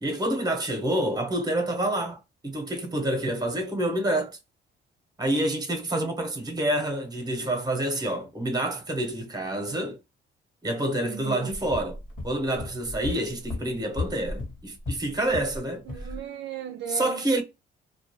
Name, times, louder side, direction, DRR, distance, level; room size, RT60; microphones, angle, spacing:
voice 1, 0.0-4.4 5.2-10.0 10.6-12.0 12.2-15.8 16.9-17.4, right 1 dB, 20° right, 0.9 m, -28 dB
voice 2, 11.0-11.6 15.9-17.3, right 9 dB, 60° right, 0.4 m, -37 dB
sound 1, 11.5-15.6 15.9-16.2, left 2 dB, 40° left, 1.1 m, -35 dB
2.2 x 2.2 x 3.0 m
cardioid pair, 90°, 20 cm